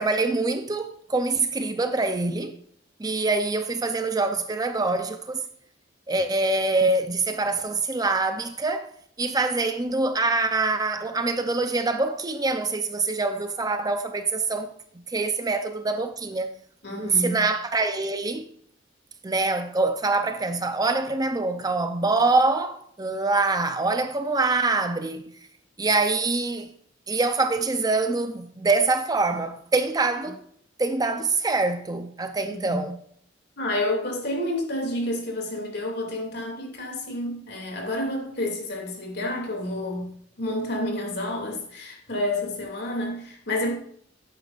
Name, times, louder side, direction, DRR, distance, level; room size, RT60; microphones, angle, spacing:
voice 1, 0.0-2.5 3.0-5.4 6.1-8.9 9.2-14.7 15.1-16.5 17.0-18.4 19.2-25.2 25.8-26.7 27.1-30.4 30.8-33.0, right 3 dB, 20° right, 0.6 m, -25 dB
voice 2, 16.8-17.3 32.5-32.8 33.6-43.7, left 1 dB, 60° left, 2.6 m, -29 dB
11.0 x 8.8 x 2.5 m
head